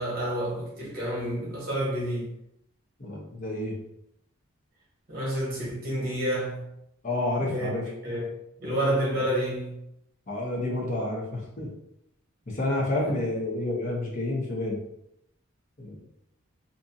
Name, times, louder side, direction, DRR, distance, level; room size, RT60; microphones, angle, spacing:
voice 1, 0.0-2.3 5.1-6.6 7.4-7.7 8.0-8.3 8.6-9.8 13.0-13.1, right 1 dB, 45° right, 1.1 m, -29 dB
voice 2, 3.0-3.8 7.0-7.9 10.3-11.7 12.5-14.8 15.8-16.0, left 1 dB, 35° left, 0.7 m, -29 dB
2.6 x 2.4 x 2.6 m
head